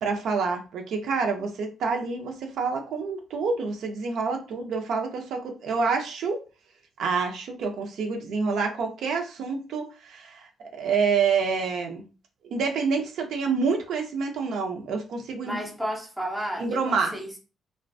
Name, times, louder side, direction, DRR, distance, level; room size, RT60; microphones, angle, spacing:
voice 1, 0.0-6.4 7.0-12.0 12.5-15.6 16.6-17.1, right 5 dB, 70° right, 0.5 m, -27 dB
voice 2, 15.4-17.4, equal, ahead, 0.5 m, -33 dB
2.4 x 2.1 x 2.5 m
cardioid pair, 150°, 0 cm